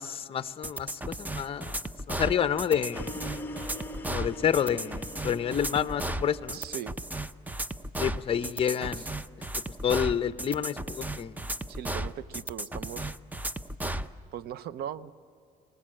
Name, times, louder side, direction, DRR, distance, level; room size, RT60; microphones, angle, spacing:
voice 1, 0.0-1.8 2.1-3.2 4.1-6.6 8.0-9.0 9.8-11.4, left 8 dB, 35° left, 12 dB, 0.6 m, -29 dB
sound 1, 0.6-14.1, right 1 dB, 10° right, 0.6 m, -35 dB
sound 2, 2.9-7.0, left 1 dB, 10° left, 1.1 m, -42 dB
voice 2, 6.5-6.9 9.0-9.1 11.7-13.1 14.3-15.1, right 10 dB, 70° right, 16 dB, 0.7 m, -39 dB
25.0 x 19.0 x 7.6 m, 2.3 s
cardioid pair, 110°, 17 cm